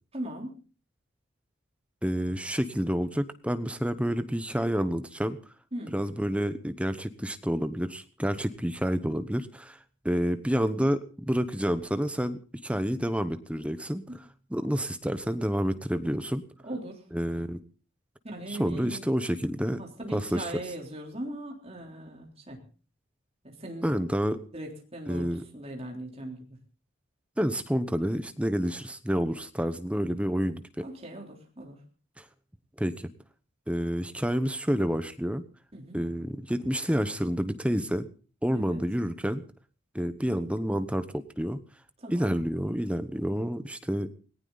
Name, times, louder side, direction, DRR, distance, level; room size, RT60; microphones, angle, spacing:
voice 1, 0.1-0.6 5.7-5.9 16.6-17.0 18.2-19.0 19.8-22.6 23.4-24.0 24.5-26.6 30.8-31.8 35.7-36.0 38.5-38.8 42.0-42.4, right 1 dB, 30° right, 1 dB, 3.6 m, -39 dB
voice 2, 2.0-5.4 5.9-9.8 10.0-14.2 14.5-16.4 17.1-17.6 18.5-19.8 20.1-20.5 23.8-24.4 25.1-25.4 27.4-30.9 32.2-32.3 32.8-33.1 33.7-35.4 35.9-38.1 38.4-39.4 39.9-41.6 42.1-44.1, equal, 5° right, 11 dB, 0.9 m, -29 dB
19.0 x 18.0 x 4.0 m, 0.38 s
head